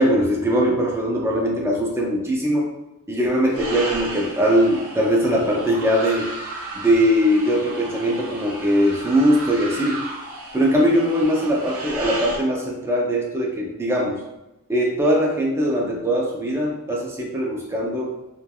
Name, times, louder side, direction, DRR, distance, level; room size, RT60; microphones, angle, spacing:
voice 1, 0.0-2.7 3.1-6.3 6.7-10.0 10.5-14.2 14.7-18.2, equal, 10° right, -2 dB, 0.4 m, -21 dB
sound 1, 3.5-12.4, right 2 dB, 75° right, 0.6 m, -34 dB
3.2 x 2.2 x 2.2 m, 0.98 s
head